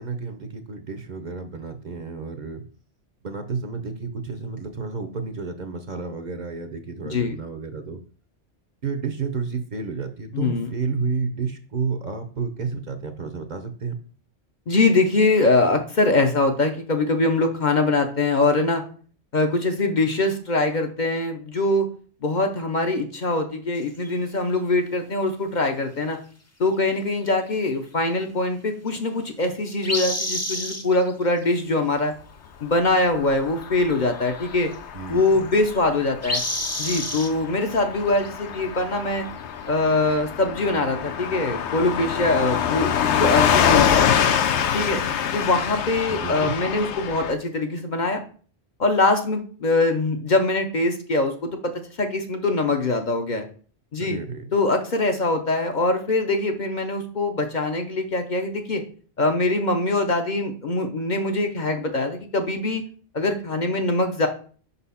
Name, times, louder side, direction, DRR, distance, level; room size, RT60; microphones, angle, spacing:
voice 1, 0.0-2.6 3.2-8.0 8.8-14.0 34.9-35.5 46.1-46.6 54.0-54.5, right 5 dB, 50° right, 7 dB, 0.7 m, -31 dB
voice 2, 7.0-7.3 10.3-10.7 14.7-18.8 19.3-21.9 22.2-26.2 26.6-32.1 32.6-34.7 35.1-36.4 36.8-39.3 39.7-44.1 44.7-45.0 45.3-48.2 48.8-51.7 52.0-53.4 53.9-54.2 54.5-58.8 59.2-62.8 63.1-64.3, left 2 dB, 50° left, 5 dB, 0.8 m, -23 dB
sound 1, 23.7-24.1 29.8-31.1 31.4-31.6 33.6-33.7 33.9-34.7 35.2-35.8 36.2-37.3 37.9-38.3 38.5-38.6 39.8-40.1, left 1 dB, 15° left, 0.6 m, -29 dB
Car passing by / Truck, 33.0-47.3, left 8 dB, 85° left, 0.9 m, -25 dB
5.4 x 4.1 x 5.5 m, 0.44 s
omnidirectional pair, 1.1 m